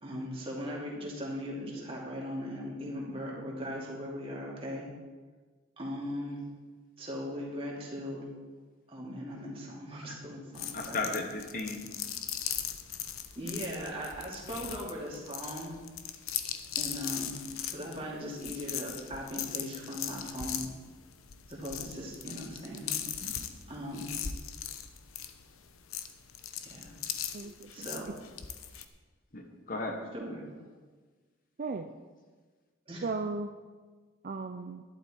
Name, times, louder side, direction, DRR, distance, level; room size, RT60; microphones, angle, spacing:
voice 1, 0.0-4.9 5.8-6.4 7.0-8.2 8.9-11.1 13.4-15.7 16.8-17.4 17.7-20.6 21.5-23.0 23.7-24.2 26.5-27.0 27.7-28.1 30.1-30.4 32.9-33.1, equal, 25° right, -4 dB, 2.7 m, -39 dB
sound 1, 10.5-28.9, left 9 dB, 90° left, 0.8 m, -39 dB
voice 2, 10.7-11.9 23.2-23.4 29.3-30.0, left 3 dB, 40° left, 3 dB, 1.3 m, -35 dB
voice 3, 27.3-28.2 31.6-31.9 33.0-33.5 34.2-34.8, right 3 dB, 45° right, 7 dB, 0.4 m, -36 dB
12.0 x 11.5 x 4.5 m, 1.4 s
head